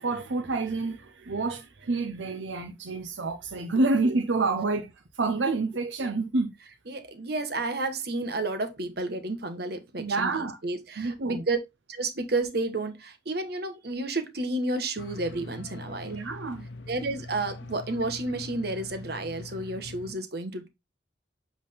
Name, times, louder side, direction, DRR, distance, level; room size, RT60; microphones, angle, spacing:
voice 1, 0.0-4.9 5.1-6.5 10.0-10.6 11.0-11.4 16.0-16.7, right 3 dB, 90° right, 0.7 m, -28 dB
voice 2, 6.9-11.6 11.9-16.1 16.9-20.7, right 2 dB, 60° right, 1.2 m, -31 dB
sound 1, 15.0-20.1, left 2 dB, 75° left, 0.7 m, -42 dB
7.8 x 3.6 x 3.4 m
head